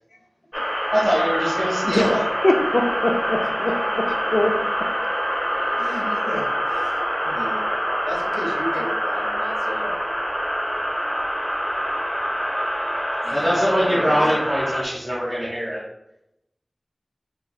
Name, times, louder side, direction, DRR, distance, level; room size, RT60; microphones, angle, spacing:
sound 1, 0.5-14.8, equal, 10° left, 0.7 m, -25 dB
voice 1, 0.9-2.2 13.3-15.8, equal, 5° right, -6 dB, 1.1 m, -22 dB
voice 2, 2.4-4.0 4.3-4.5 5.6-5.9, left 1 dB, 55° left, 3 dB, 0.4 m, -22 dB
voice 3, 5.8-7.6 8.0-10.0 13.2-14.3, left 1 dB, 90° left, -1 dB, 0.7 m, -33 dB
5.5 x 2.2 x 2.3 m, 0.84 s
wide cardioid pair, 45°, 0 cm